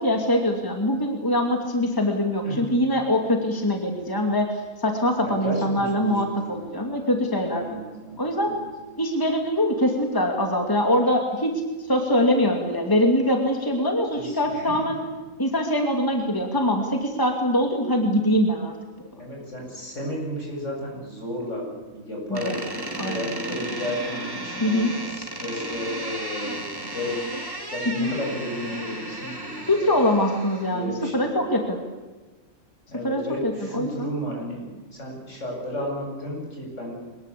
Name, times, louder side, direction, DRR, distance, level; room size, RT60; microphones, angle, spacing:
voice 1, 0.0-7.6 8.2-8.5 9.0-11.5 11.9-15.0 15.4-18.7 22.3-22.5 23.0-23.2 24.6-24.9 28.0-28.1 29.7-31.8 33.0-33.9, left 1 dB, 15° left, 3 dB, 2.6 m, -23 dB
voice 2, 5.2-6.9 7.4-8.6 14.1-14.9 19.1-27.3 27.7-30.0 30.7-31.4 32.9-36.9, equal, 65° left, -1 dB, 8.2 m, -33 dB
Door, 22.3-30.8, right 1 dB, 15° right, 3.2 m, -34 dB
24.0 x 21.0 x 8.5 m, 1.3 s
omnidirectional pair, 1.4 m